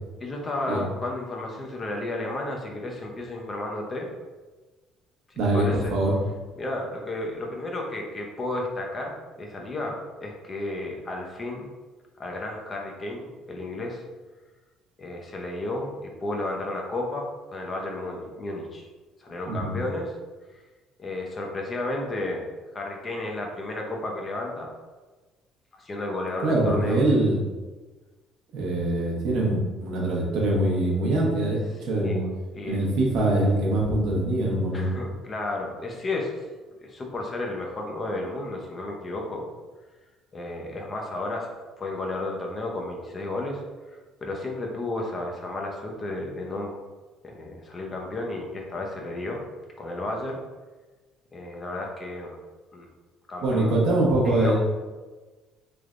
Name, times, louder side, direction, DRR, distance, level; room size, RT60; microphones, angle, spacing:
voice 1, 0.2-4.1 5.3-6.0 6.6-11.7 12.2-14.0 15.0-18.9 19.2-20.1 21.0-22.4 22.7-24.7 25.7-27.0 31.8-32.9 34.7-36.3 36.8-39.5 40.3-43.6 43.9-46.7 47.2-49.4 49.8-50.4 51.3-52.4 52.7-52.9 53.3-53.8 54.2-54.5, left 2 dB, 25° left, 0 dB, 0.6 m, -33 dB
voice 2, 5.4-6.1 19.5-19.8 26.4-27.4 28.5-32.2 32.6-34.9 53.4-54.5, right 1 dB, 70° right, -2 dB, 0.9 m, -23 dB
3.3 x 3.2 x 2.5 m, 1.3 s
cardioid pair, 150°, 0 cm